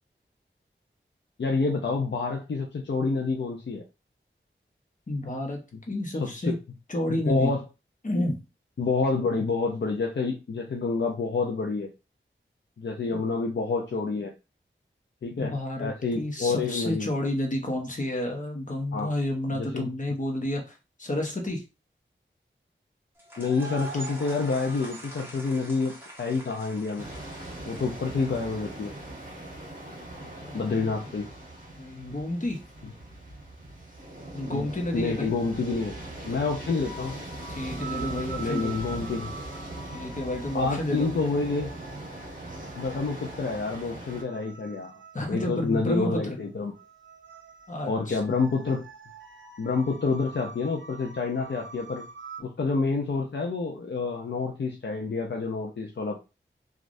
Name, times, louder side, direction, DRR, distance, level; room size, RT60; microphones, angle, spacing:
voice 1, 1.4-3.8 7.1-7.6 8.8-11.9 12.8-14.3 15.2-17.1 18.9-19.1 19.5-19.9 23.4-27.1 27.7-28.9 30.5-31.3 34.5-34.7 34.9-37.2 38.4-39.3 40.5-41.7 42.8-44.9 45.3-46.7 47.9-48.8 49.6-52.1 52.4-56.2, left 4 dB, 60° left, 0 dB, 0.5 m, -28 dB
voice 2, 5.1-6.6 6.9-7.6 8.0-8.4 13.1-13.2 15.4-21.6 30.2-30.9 31.8-32.6 34.3-35.3 37.5-38.8 39.9-41.1 45.1-46.4 47.7-48.2, left 1 dB, 40° left, 1 dB, 0.9 m, -30 dB
sound 1, 23.2-29.2, right 1 dB, 10° right, 1.0 m, -43 dB
sound 2, 27.0-44.2, right 1 dB, 40° right, 1.1 m, -40 dB
sound 3, 34.9-52.4, right 4 dB, 70° right, 0.5 m, -45 dB
3.2 x 2.4 x 2.5 m, 0.29 s
wide cardioid pair, 65°, 20 cm